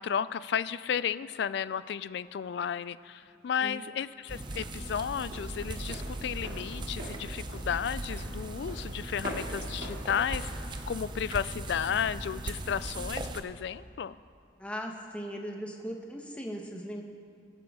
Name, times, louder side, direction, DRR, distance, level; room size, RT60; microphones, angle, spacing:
voice 1, 0.0-14.2, left 8 dB, 60° left, 17 dB, 0.3 m, -33 dB
Walk footsteps, 3.0-11.7, right 1 dB, 55° right, 2.8 m, -45 dB
sound 1, 4.3-13.4, right 1 dB, 25° right, 0.6 m, -38 dB
voice 2, 14.6-17.0, equal, 5° left, 1 dB, 1.1 m, -38 dB
23.0 x 8.8 x 3.7 m, 2.3 s
head